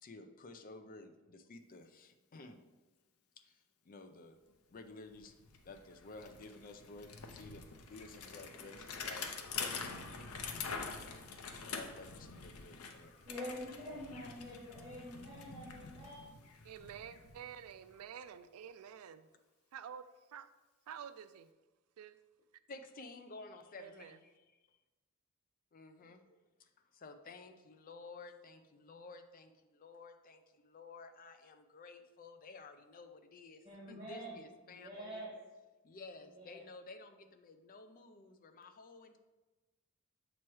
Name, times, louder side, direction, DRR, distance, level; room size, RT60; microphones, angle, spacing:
voice 1, 0.0-2.6 3.4-4.4 4.7-5.3 5.6-10.8 11.6-13.1 22.7-24.4 25.7-35.3 35.8-39.2, left 3 dB, 40° left, 7 dB, 0.5 m, -53 dB
Bicycle, 4.8-4.9 5.1-18.0, left 5 dB, 85° left, 0.6 m, -46 dB
voice 2, 13.2-16.2 33.6-34.3 34.7-35.3 36.3-36.6, equal, 20° right, -10 dB, 1.9 m, -46 dB
voice 3, 16.7-19.3 19.7-20.0 20.3-20.5 20.9-21.5 22.0-22.2 23.8-24.2, right 8 dB, 85° right, 12 dB, 0.4 m, -49 dB
7.2 x 3.0 x 4.7 m, 1.1 s
head